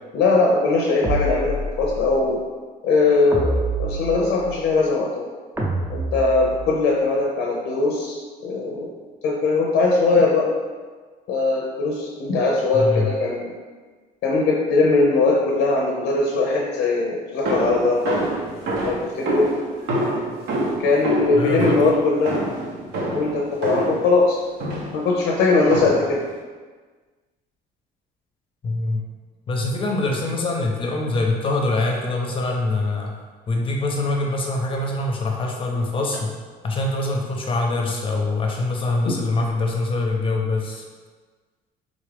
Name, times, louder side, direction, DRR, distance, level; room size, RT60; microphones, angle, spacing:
voice 1, 0.1-2.4 2.8-5.1 5.9-8.9 9.2-10.5 11.3-13.5 14.2-18.3 18.8-19.5 20.8-22.4 23.1-24.4 24.9-26.2 39.0-39.1, left 3 dB, 80° left, -2 dB, 0.5 m, -20 dB
sound 1, 1.0-2.1 3.3-4.6 5.6-6.8, right 1 dB, 15° right, 0.6 m, -27 dB
voice 2, 12.7-13.1 21.4-21.8 28.6-29.0 29.5-33.1 33.5-36.3 36.6-40.8, left 2 dB, 30° left, 1 dB, 0.6 m, -24 dB
sound 2, 17.5-24.1 24.6-25.1 25.7-26.2, right 1 dB, 75° right, 0.8 m, -26 dB
3.8 x 2.4 x 3.2 m, 1.4 s
cardioid pair, 110°, 17 cm